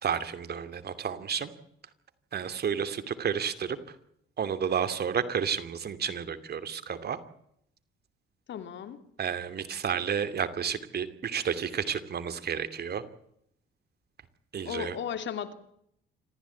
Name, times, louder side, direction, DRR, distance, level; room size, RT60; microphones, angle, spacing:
voice 1, 0.0-1.5 2.3-4.0 4.4-7.2 9.2-13.0 14.5-15.0, right 7 dB, 55° right, 11 dB, 2.7 m, -31 dB
voice 2, 8.5-9.0 14.6-15.5, left 8 dB, 65° left, 9 dB, 2.8 m, -35 dB
27.0 x 15.0 x 8.5 m, 0.73 s
cardioid pair, 90°, 20 cm